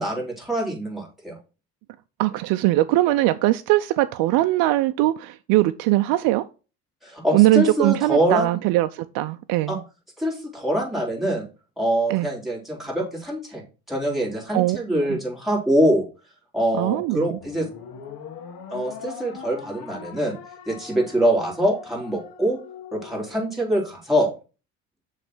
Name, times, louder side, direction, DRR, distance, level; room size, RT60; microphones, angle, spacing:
voice 1, 0.0-1.4 7.0-8.6 9.7-9.8 10.2-11.4 11.8-13.6 13.9-16.1 16.5-17.7 18.7-20.3 20.7-22.6 22.9-24.3, equal, ahead, 3.6 m, -24 dB
voice 2, 2.2-6.4 7.3-8.9 9.1-9.8 12.1-12.3 14.5-14.8 15.1-15.2 16.8-17.2, right 17 dB, 80° right, 0.5 m, -20 dB
sound 1, 17.4-23.9, left 6 dB, 75° left, 1.4 m, -41 dB
6.9 x 3.3 x 6.0 m
cardioid pair, 95°, 35 cm